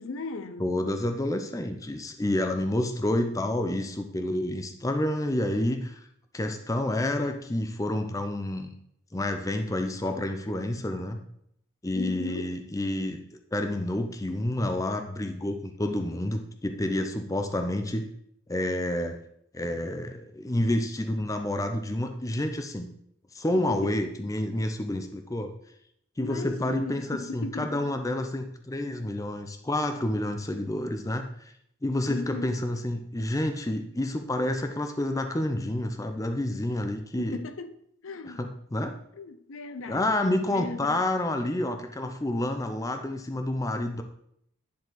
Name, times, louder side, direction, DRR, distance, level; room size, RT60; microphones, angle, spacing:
voice 1, 0.0-0.7 12.0-12.5 23.6-24.0 26.2-28.3 32.1-32.6 37.2-37.8 38.0-38.4 39.2-41.0 42.0-42.1, left 3 dB, 70° left, 0.5 m, -37 dB
voice 2, 0.6-6.0 6.3-8.7 9.1-11.2 11.8-13.2 13.5-18.1 18.5-19.2 19.5-22.9 23.3-25.5 26.2-31.5 31.8-37.4 38.2-39.0 39.9-44.0, left 1 dB, 15° left, 0.5 m, -29 dB
10.0 x 4.6 x 3.9 m
head